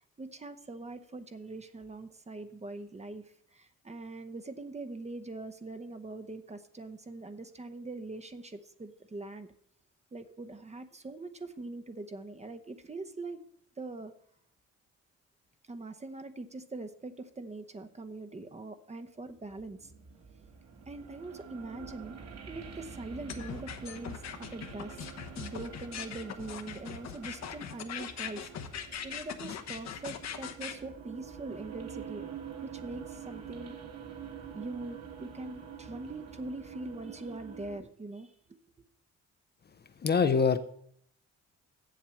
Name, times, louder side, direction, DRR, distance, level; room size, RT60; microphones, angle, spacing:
voice 1, 0.2-3.2 3.5-9.5 10.1-13.4 13.8-14.1 15.7-19.9 20.9-22.2 22.5-25.0 25.4-28.5 29.0-32.3 32.6-33.8 34.5-38.3, right 2 dB, 20° right, 9 dB, 0.9 m, -42 dB
sound 1, 19.3-37.8, right 7 dB, 60° right, 1.7 m, -47 dB
sound 2, 23.3-30.7, left 8 dB, 60° left, 1.0 m, -40 dB
voice 2, 40.0-40.6, left 5 dB, 35° left, 10 dB, 0.6 m, -24 dB
7.5 x 7.4 x 7.0 m, 0.66 s
cardioid pair, 90°, 30 cm